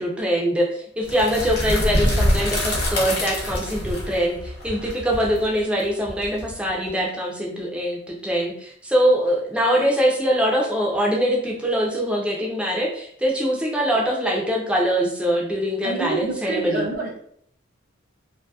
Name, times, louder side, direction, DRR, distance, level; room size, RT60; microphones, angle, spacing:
voice 1, 0.0-16.9, equal, 5° right, -2 dB, 0.4 m, -23 dB
sound 1, 1.1-6.9, left 1 dB, 50° left, 0.7 m, -25 dB
voice 2, 15.8-17.2, right 3 dB, 45° right, 0 dB, 0.6 m, -28 dB
2.7 x 2.6 x 2.3 m, 0.65 s
head